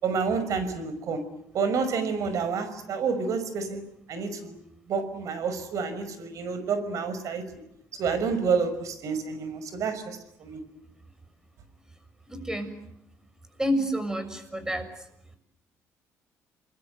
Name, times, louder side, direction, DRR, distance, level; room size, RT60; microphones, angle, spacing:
voice 1, 0.0-1.2 1.5-3.8 4.1-4.6 4.9-7.4 8.0-10.6, right 5 dB, 65° right, 12 dB, 5.6 m, -29 dB
voice 2, 12.3-12.7 13.6-14.9, equal, 10° right, 10 dB, 6.7 m, -28 dB
28.5 x 22.0 x 9.5 m, 0.77 s
cardioid pair, 90°, 6 cm